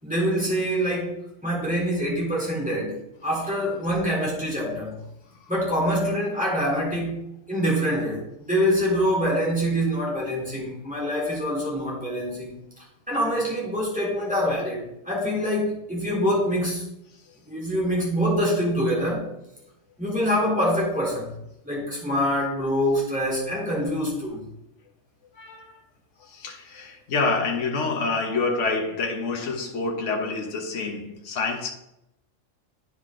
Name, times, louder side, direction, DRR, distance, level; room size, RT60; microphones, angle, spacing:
voice 1, 0.0-5.0 5.5-12.6 13.1-16.8 17.5-19.3 20.0-21.3 21.6-24.4, equal, 5° right, -6 dB, 3.5 m, -25 dB
voice 2, 25.3-25.8 26.2-31.7, left 3 dB, 65° left, 2 dB, 1.4 m, -27 dB
9.4 x 5.8 x 3.8 m, 0.85 s
omnidirectional pair, 1.4 m